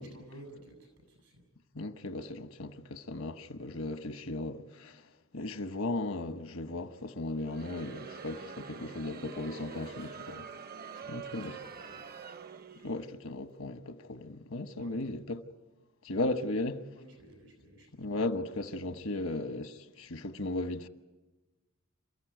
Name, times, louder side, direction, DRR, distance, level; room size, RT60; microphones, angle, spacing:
voice 1, 0.0-1.4 9.4-10.2 10.9-12.0 14.8-15.0 16.9-18.2 18.9-19.2, right 1 dB, 90° right, 7.8 m, -53 dB
voice 2, 1.7-5.1 5.3-10.5 11.1-11.6 12.8-15.4 16.0-16.8 17.9-20.9, left 2 dB, 80° left, 1.1 m, -36 dB
Crowd, 7.4-13.1, right 5 dB, 45° right, 0.8 m, -45 dB
28.5 x 15.0 x 9.2 m
head